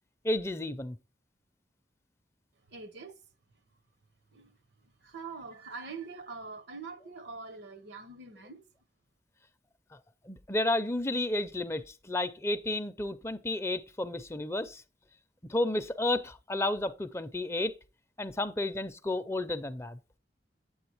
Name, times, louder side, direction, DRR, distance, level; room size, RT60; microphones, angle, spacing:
voice 1, 0.2-1.0 10.3-14.8 15.5-17.7 18.2-20.0, left 1 dB, 15° left, 0.5 m, -32 dB
voice 2, 2.7-3.2 4.3-8.6, right 4 dB, 75° right, 1.0 m, -44 dB
8.7 x 7.8 x 3.0 m
head